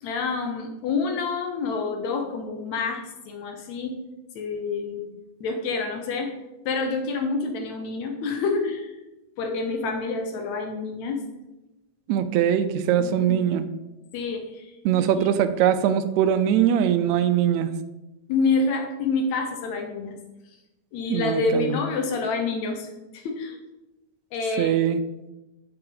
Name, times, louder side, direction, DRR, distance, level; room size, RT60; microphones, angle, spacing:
voice 1, 0.0-4.0 4.4-5.1 5.4-6.4 6.7-8.9 9.4-11.2 13.0-13.5 14.1-15.3 18.3-20.2 20.9-23.6 24.3-24.8, left 4 dB, 75° left, 4 dB, 2.1 m, -28 dB
voice 2, 12.1-13.7 14.9-17.7 21.1-21.8 24.6-25.0, right 9 dB, 80° right, 10 dB, 1.8 m, -22 dB
7.8 x 6.6 x 3.8 m, 1.0 s
omnidirectional pair, 3.4 m